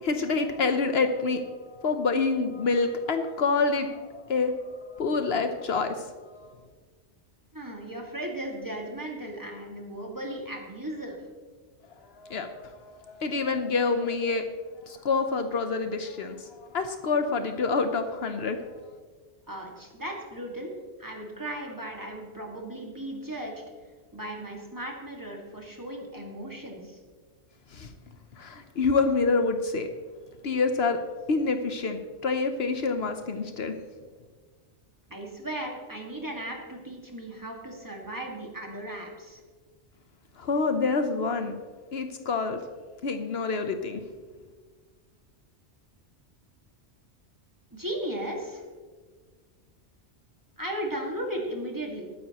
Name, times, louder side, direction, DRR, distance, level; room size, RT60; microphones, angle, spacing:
voice 1, 0.0-4.6 5.0-6.5 12.1-14.5 14.9-18.6 27.7-27.9 28.4-29.9 30.4-31.0 31.3-33.7 40.4-41.6 41.9-42.6 43.0-44.0, left 4 dB, 65° left, 7 dB, 1.0 m, -27 dB
voice 2, 7.5-11.2 19.5-20.7 21.0-23.5 24.1-27.0 35.1-39.4 47.7-48.6 50.6-52.1, right 1 dB, 15° right, 0 dB, 1.9 m, -36 dB
20.0 x 9.6 x 3.0 m, 1.5 s
omnidirectional pair, 1.2 m